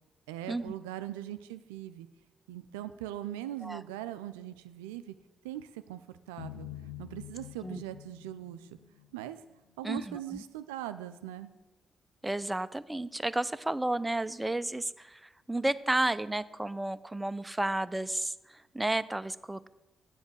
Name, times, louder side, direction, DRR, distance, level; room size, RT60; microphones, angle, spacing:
voice 1, 0.3-2.1 2.5-5.2 5.4-6.7 7.0-8.7 9.1-9.4 9.8-11.5, right 12 dB, 85° right, 11 dB, 0.3 m, -40 dB
sound 1, 6.4-9.6, left 13 dB, 90° left, 0.4 m, -46 dB
voice 2, 9.8-10.4 12.2-19.7, right 1 dB, 15° right, 15 dB, 0.5 m, -32 dB
7.7 x 7.2 x 8.0 m, 1.1 s
hypercardioid pair, 45°, 0 cm